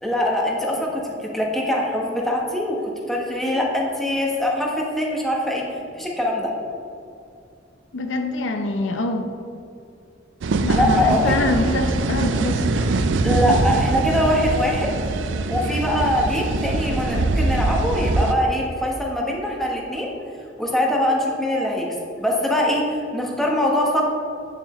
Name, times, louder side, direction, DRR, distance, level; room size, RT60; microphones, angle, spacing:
voice 1, 0.0-2.8 3.1-5.6 6.0-6.5 10.7-11.4 12.8-12.9 13.2-14.9 15.5-20.1 20.6-21.9 22.2-22.8 23.1-24.0, left 1 dB, ahead, -2 dB, 1.1 m, -22 dB
voice 2, 7.9-9.3 10.6-12.7, left 2 dB, 90° left, 4 dB, 0.6 m, -24 dB
sound 1, 10.4-18.3, right 3 dB, 80° right, 0.4 m, -23 dB
9.1 x 6.8 x 3.1 m, 2.5 s
head